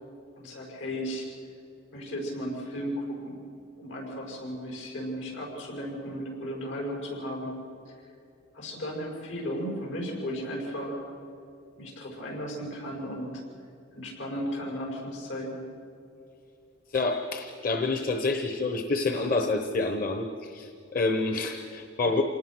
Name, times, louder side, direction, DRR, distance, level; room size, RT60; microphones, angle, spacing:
voice 1, 0.4-1.3 1.9-3.4 3.8-7.6 8.5-11.0 11.8-13.4 13.9-15.6, equal, 85° left, 0 dB, 6.4 m, -35 dB
voice 2, 16.9-22.2, left 3 dB, 45° left, 6 dB, 1.0 m, -28 dB
27.0 x 19.0 x 6.2 m, 2.6 s
head